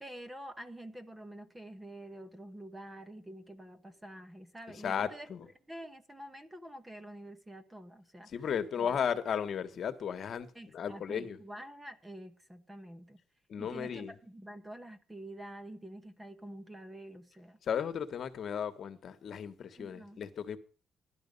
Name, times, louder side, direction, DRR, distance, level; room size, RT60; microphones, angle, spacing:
voice 1, 0.0-5.3 5.7-8.3 8.8-9.0 10.5-13.2 13.6-17.6 19.8-20.2, right 1 dB, 10° right, 0.9 m, -47 dB
voice 2, 4.8-5.5 8.3-10.5 10.7-11.4 13.5-14.1 17.6-20.6, left 8 dB, 45° left, 1.4 m, -35 dB
16.5 x 11.5 x 5.4 m
cardioid pair, 170°, 0 cm